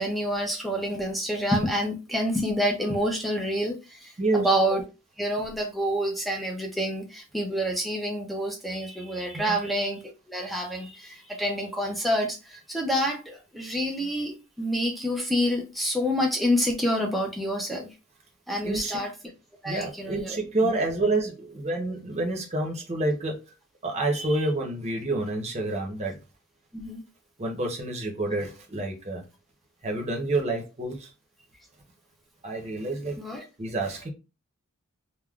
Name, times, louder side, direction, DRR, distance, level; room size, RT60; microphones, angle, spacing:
voice 1, 0.0-4.8 5.2-10.0 10.3-17.9 18.5-19.1 19.6-20.4 24.2-24.3 26.7-27.0 33.2-33.4, equal, ahead, 0.4 m, -28 dB
voice 2, 4.2-4.5 9.3-9.6 18.6-19.0 19.6-23.4 23.8-26.2 27.4-29.2 29.8-31.1 32.4-33.2 33.6-34.1, right 2 dB, 30° right, 0.7 m, -28 dB
3.5 x 2.2 x 2.3 m
head